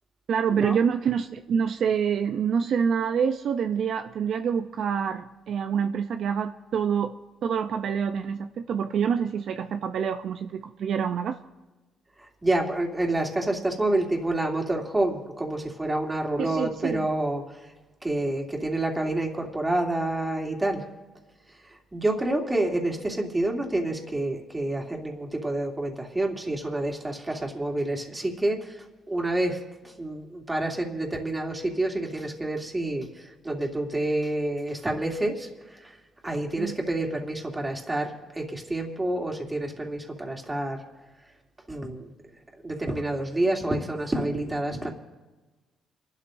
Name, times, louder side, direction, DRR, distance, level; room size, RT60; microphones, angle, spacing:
voice 1, 0.3-7.1 7.4-11.4 16.4-17.0 36.6-36.8, right 7 dB, 65° right, 0.6 m, -26 dB
voice 2, 12.2-17.7 18.0-20.8 21.7-36.0 36.2-40.8 41.7-42.1 42.6-44.9, right 1 dB, 15° right, 2.7 m, -28 dB
29.0 x 12.5 x 2.7 m
cardioid pair, 90°, 0 cm